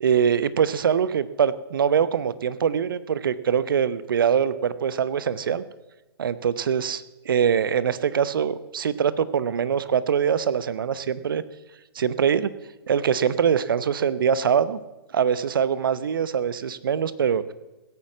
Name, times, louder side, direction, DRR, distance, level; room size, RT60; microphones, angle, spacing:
voice 1, 0.0-5.6 6.2-11.4 11.9-12.5 12.9-14.8 15.1-17.5, right 7 dB, 60° right, 16 dB, 0.9 m, -23 dB
16.0 x 9.3 x 7.4 m, 1.1 s
figure-of-eight pair, 125°, 13 cm